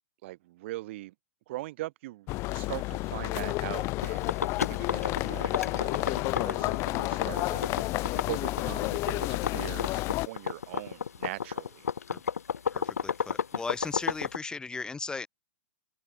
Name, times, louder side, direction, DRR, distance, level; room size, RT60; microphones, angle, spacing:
voice 1, 0.2-1.1 1.5-4.3 4.7-7.7 8.3-11.9, right 18 dB, 55° right, 2.8 m, -41 dB
sound 1, 2.3-10.3, left 21 dB, 35° left, 1.0 m, -31 dB
sound 2, 4.0-14.4, left 7 dB, 90° left, 1.1 m, -32 dB
voice 2, 12.7-15.3, left 4 dB, 10° left, 1.0 m, -37 dB
hypercardioid pair, 130°, 8 cm